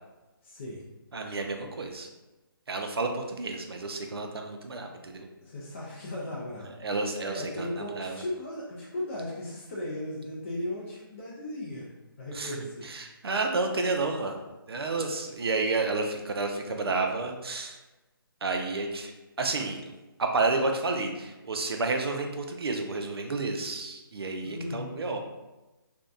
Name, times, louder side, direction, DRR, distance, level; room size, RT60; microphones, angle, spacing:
voice 1, 0.4-0.8 5.4-12.9 24.4-25.2, left 1 dB, 30° left, -6 dB, 0.4 m, -37 dB
voice 2, 1.1-2.1 2.7-5.3 6.8-8.2 12.3-12.6 12.8-14.4 14.7-17.8 18.4-19.1 19.4-19.9 20.2-25.2, right 3 dB, 90° right, 4 dB, 0.4 m, -30 dB
2.6 x 2.1 x 2.3 m, 1.1 s
hypercardioid pair, 160°, 12 cm